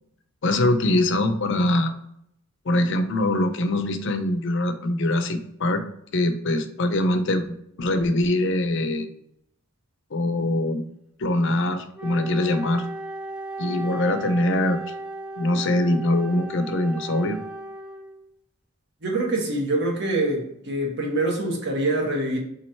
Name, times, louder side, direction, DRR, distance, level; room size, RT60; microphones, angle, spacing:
voice 1, 0.4-1.9 2.7-5.8 6.1-7.4 7.8-9.1 10.1-10.8 11.2-12.8 13.6-14.8 15.4-17.4, left 1 dB, 65° left, 0.6 m, -23 dB
Wind instrument woodwind instrument, 12.0-18.3, right 2 dB, 5° right, 0.4 m, -36 dB
voice 2, 19.0-22.4, right 2 dB, 60° right, 1.0 m, -25 dB
3.8 x 3.1 x 4.4 m
head